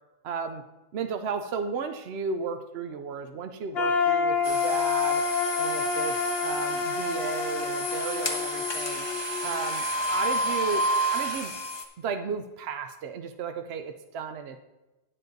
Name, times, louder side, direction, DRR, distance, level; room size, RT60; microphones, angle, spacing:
voice 1, 0.2-0.6 0.9-5.2 5.6-9.1 9.4-11.5 12.0-14.6, right 5 dB, 60° right, 7 dB, 0.8 m, -34 dB
sound 1, 3.7-9.7, left 4 dB, 50° left, 1.2 m, -28 dB
sound 2, 4.4-11.8, equal, 25° left, 0.7 m, -31 dB
9.6 x 7.5 x 3.9 m, 1.0 s
omnidirectional pair, 1.4 m